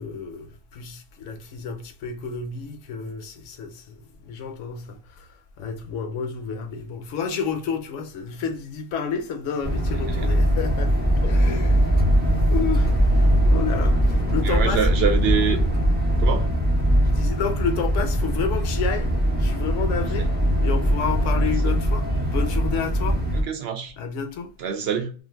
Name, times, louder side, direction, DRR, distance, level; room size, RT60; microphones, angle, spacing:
voice 1, 0.0-14.9 17.0-23.2 23.9-24.5, left 6 dB, 70° left, 0.9 m, -31 dB
sound 1, 9.6-23.4, equal, 10° right, 0.6 m, -21 dB
voice 2, 14.4-15.6 16.2-16.5 23.3-23.9 24.6-25.1, right 7 dB, 65° right, 0.6 m, -25 dB
2.5 x 2.4 x 3.3 m
omnidirectional pair, 1.4 m